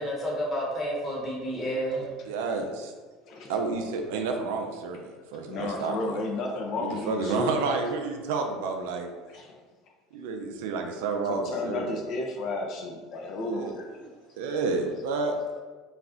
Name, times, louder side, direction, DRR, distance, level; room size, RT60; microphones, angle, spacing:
voice 1, 0.0-2.1, equal, 25° left, -3 dB, 1.0 m, -30 dB
voice 2, 2.3-2.9 3.5-5.0 5.3-6.2 6.8-9.1 10.1-12.0 13.4-13.7 14.4-15.4, right 4 dB, 80° right, 4 dB, 0.4 m, -30 dB
voice 3, 5.5-7.7 9.3-9.5 11.3-13.8 14.5-14.6, left 2 dB, 55° left, 1 dB, 0.5 m, -33 dB
2.4 x 2.1 x 3.6 m, 1.4 s
hypercardioid pair, 85°, 0 cm